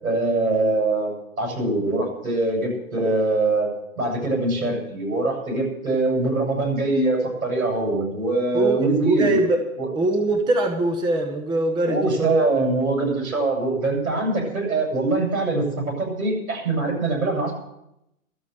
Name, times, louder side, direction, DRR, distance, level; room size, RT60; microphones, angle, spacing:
voice 1, 0.0-3.7 4.0-9.4 9.8-9.9 11.8-17.5, right 2 dB, 85° right, 0 dB, 7.5 m, -23 dB
voice 2, 8.5-9.6 9.9-12.3, right 2 dB, 10° right, 6 dB, 1.0 m, -22 dB
12.5 x 8.4 x 9.3 m, 0.85 s
hypercardioid pair, 140°, 42 cm